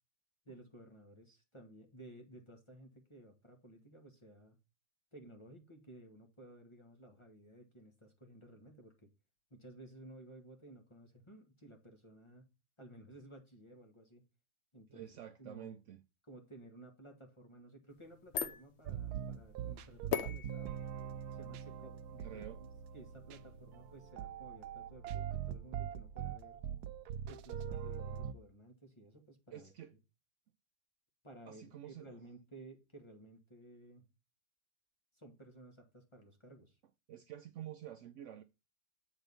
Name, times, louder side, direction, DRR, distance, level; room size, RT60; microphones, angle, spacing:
voice 1, 0.4-4.6 5.1-9.1 9.5-12.5 12.8-14.2 14.7-15.1 15.4-15.8 16.2-20.8 21.3-26.6 27.3-29.7 31.2-34.1 35.1-36.8, right 1 dB, 20° left, 1.1 m, -56 dB
voice 2, 14.9-16.0 22.2-22.6 29.5-30.0 31.5-32.1 37.1-38.4, right 11 dB, 85° right, 0.6 m, -49 dB
sound 1, 17.9-24.1, left 7 dB, 60° left, 0.7 m, -44 dB
sound 2, 18.9-28.3, right 9 dB, 70° right, 1.0 m, -42 dB
8.2 x 4.0 x 5.3 m
omnidirectional pair, 1.9 m